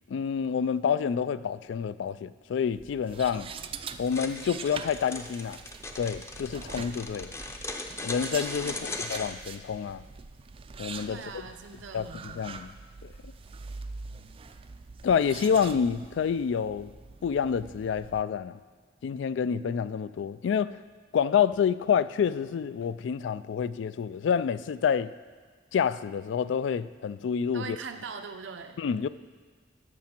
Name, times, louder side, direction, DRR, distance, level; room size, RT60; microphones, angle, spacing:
voice 1, 0.1-3.5 4.0-5.6 6.0-7.3 8.0-10.0 10.8-11.2 11.9-12.7 13.0-13.1 15.0-16.9 17.2-18.6 19.0-20.8 21.1-25.1 25.7-27.8 28.8-29.1, left 7 dB, 75° left, 0.3 m, -28 dB
sound 1, 2.7-18.2, right 5 dB, 30° right, 0.3 m, -44 dB
sound 2, 4.1-9.3, left 2 dB, 15° left, 0.6 m, -38 dB
voice 2, 8.6-9.0 11.1-12.4 27.5-28.8, right 5 dB, 85° right, 0.7 m, -41 dB
13.0 x 6.1 x 4.4 m
head